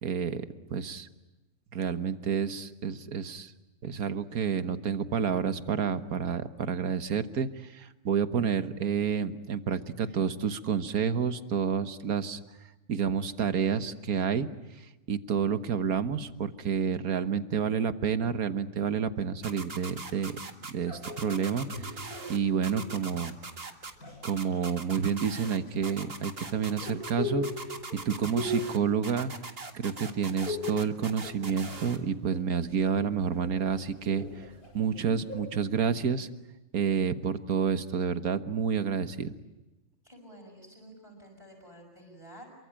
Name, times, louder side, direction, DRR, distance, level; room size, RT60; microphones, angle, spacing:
voice 1, 0.0-1.1 1.7-3.5 3.8-12.4 12.9-14.5 15.1-20.3 20.7-23.3 24.2-27.5 28.0-29.3 29.7-34.2 34.7-36.3 36.7-39.3, right 7 dB, 75° right, 10 dB, 1.7 m, -29 dB
sound 1, 19.4-20.7 21.0-22.4 22.6-23.9 24.2-25.6 25.8-27.1 27.4-28.8 29.0-32.0, right 3 dB, 40° right, 2.0 m, -41 dB
sound 2, 20.9-23.1 23.8-24.6 25.7-29.7 29.9-30.8 31.1-32.0 32.3-35.5, left 3 dB, 75° left, 8.3 m, -39 dB
voice 2, 40.0-42.5, right 1 dB, 20° right, 1 dB, 6.2 m, -50 dB
28.0 x 23.5 x 8.9 m, 1.0 s
omnidirectional pair, 1.6 m